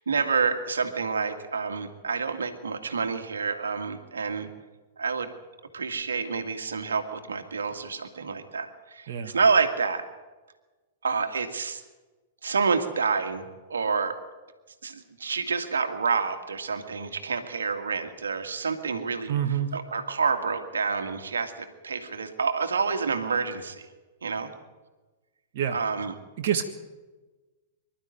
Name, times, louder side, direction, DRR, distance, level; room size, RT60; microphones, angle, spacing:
voice 1, 0.0-4.5 5.0-5.3 5.7-10.1 11.0-11.8 12.4-14.2 14.8-23.9 24.2-24.5 25.7-26.1, right 5 dB, 75° right, 7 dB, 2.0 m, -28 dB
voice 2, 19.3-19.7 25.5-25.8 26.4-26.6, right 9 dB, 50° right, 3 dB, 1.6 m, -27 dB
25.0 x 12.0 x 9.4 m, 1.2 s
figure-of-eight pair, 105°, 0 cm